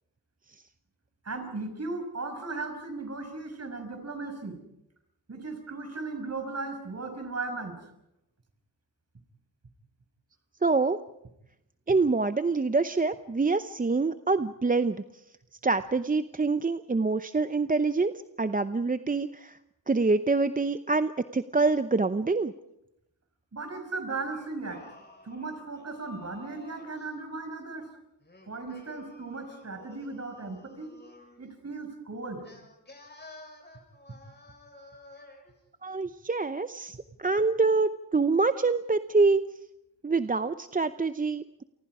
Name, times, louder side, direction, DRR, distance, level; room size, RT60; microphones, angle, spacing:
voice 1, 1.2-4.6 5.3-7.8 23.5-24.8 25.2-27.9 28.5-30.9 31.4-32.5, right 3 dB, 40° right, 7 dB, 5.9 m, -36 dB
voice 2, 10.6-11.0 11.9-15.0 15.6-19.6 19.9-22.5 35.8-39.4 40.0-41.6, right 3 dB, 20° right, 11 dB, 0.7 m, -26 dB
Singing, 24.3-27.1 28.2-31.4 32.4-35.5, left 2 dB, 25° left, 7.5 m, -52 dB
30.0 x 24.0 x 4.9 m, 0.84 s
cardioid pair, 80°, 39 cm